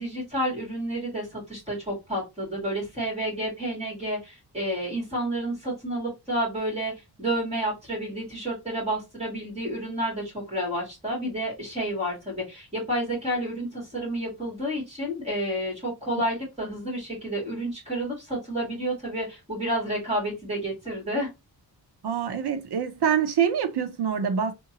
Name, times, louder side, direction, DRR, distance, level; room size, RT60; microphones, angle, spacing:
voice 1, 0.0-6.9 7.2-21.3, right 1 dB, 15° right, 2.4 m, -30 dB
voice 2, 22.0-24.5, right 7 dB, 80° right, 0.8 m, -25 dB
3.6 x 2.7 x 2.8 m
wide cardioid pair, 180°, 39 cm